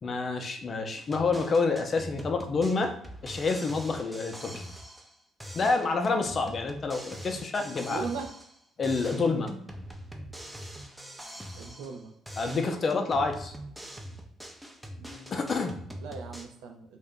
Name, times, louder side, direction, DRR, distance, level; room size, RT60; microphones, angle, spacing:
voice 1, 0.0-2.9 3.2-4.5 5.5-8.1 8.8-9.5 12.4-13.5 15.3-15.7, left 4 dB, 45° left, 6 dB, 0.5 m, -28 dB
sound 1, 1.0-5.1 5.4-8.6 8.8-12.0 12.3-16.5, equal, 5° right, 0.5 m, -43 dB
voice 2, 7.9-8.3 11.6-12.1 15.0-17.0, right 5 dB, 85° right, 3 dB, 0.4 m, -39 dB
2.5 x 2.1 x 3.6 m, 0.69 s
supercardioid pair, 65°, 0 cm